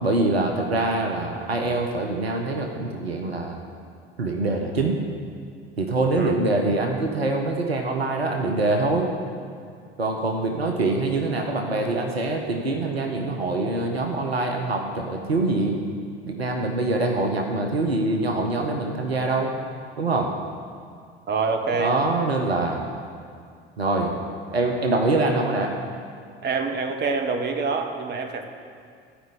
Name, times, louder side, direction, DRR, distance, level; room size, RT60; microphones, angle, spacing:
voice 1, 0.0-3.6 4.2-5.0 5.8-9.1 10.0-15.8 16.3-19.5 20.0-20.3 21.8-22.9 23.8-24.2 24.5-25.7, right 2 dB, 85° right, 2 dB, 0.9 m, -24 dB
voice 2, 21.3-22.0 26.4-28.4, right 4 dB, 35° right, 4 dB, 1.3 m, -26 dB
13.0 x 5.3 x 7.9 m, 2.2 s
figure-of-eight pair, 60°, 30 cm